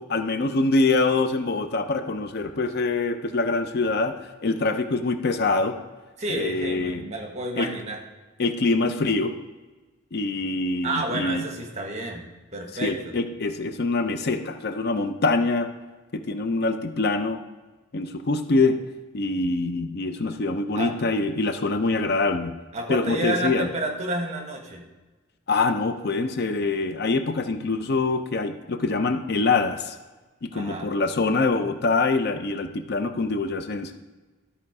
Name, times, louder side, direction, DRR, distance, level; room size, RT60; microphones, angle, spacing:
voice 1, 0.0-4.1 4.4-5.8 6.3-7.0 7.6-7.7 8.4-9.3 10.1-11.4 12.8-15.7 16.1-17.4 17.9-18.8 19.1-22.6 22.9-23.7 25.5-30.0 30.4-33.9, left 3 dB, 50° left, 8 dB, 0.5 m, -24 dB
voice 2, 6.2-8.0 10.8-12.3 12.5-13.2 20.7-20.9 22.7-24.9 30.5-30.9, right 1 dB, 30° right, 2 dB, 1.3 m, -30 dB
12.5 x 4.3 x 4.8 m, 1.2 s
head